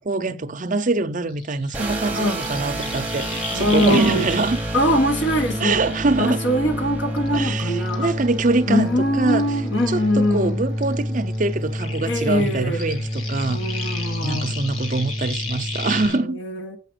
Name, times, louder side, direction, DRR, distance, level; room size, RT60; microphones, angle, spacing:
voice 1, 0.0-4.6 5.6-6.4 7.3-9.4 9.9-13.6 14.2-16.4, right 3 dB, 40° right, 0.6 m, -24 dB
sound 1, 1.3-6.8 7.2-10.5 10.8-16.2, left 3 dB, 80° left, 1.8 m, -35 dB
sound 2, 1.7-16.1, equal, 10° right, 1.0 m, -28 dB
voice 2, 3.5-4.3 4.7-5.8 6.2-8.1 8.7-10.6 12.0-12.8 13.5-14.5 16.1-16.8, left 1 dB, 60° left, 1.3 m, -22 dB
8.3 x 4.9 x 6.2 m
head